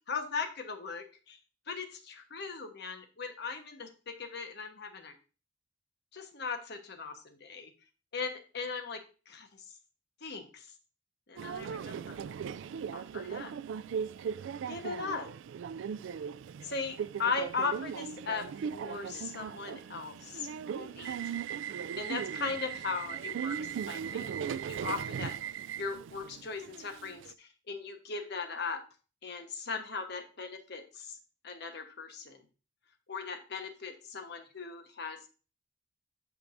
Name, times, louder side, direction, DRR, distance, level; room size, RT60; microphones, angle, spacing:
voice 1, 0.1-1.4 1.7-5.1 6.1-7.7 8.1-9.0 9.3-9.5 10.2-10.6 11.3-12.2 12.9-13.5 14.7-15.3 16.6-18.5 18.7-20.5 20.8-21.5 22.0-25.3 25.8-28.8 29.2-31.2 31.4-32.4 33.1-35.2, left 4 dB, 60° left, 5 dB, 1.1 m, -38 dB
Subway metro underground, 11.4-27.3, right 7 dB, 75° right, 0.3 m, -38 dB
8.6 x 6.1 x 2.6 m, 0.34 s
head